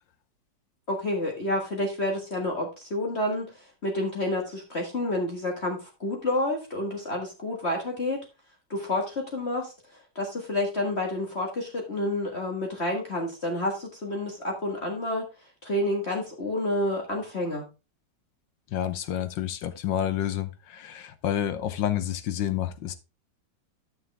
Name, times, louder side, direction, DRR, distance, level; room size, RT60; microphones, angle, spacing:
voice 1, 0.9-3.5 3.8-8.2 8.7-9.7 10.2-15.3 15.6-17.7, left 1 dB, 35° left, 1.8 m, -29 dB
voice 2, 18.7-23.0, left 11 dB, 85° left, 1.6 m, -29 dB
11.5 x 6.2 x 3.4 m
omnidirectional pair, 2.0 m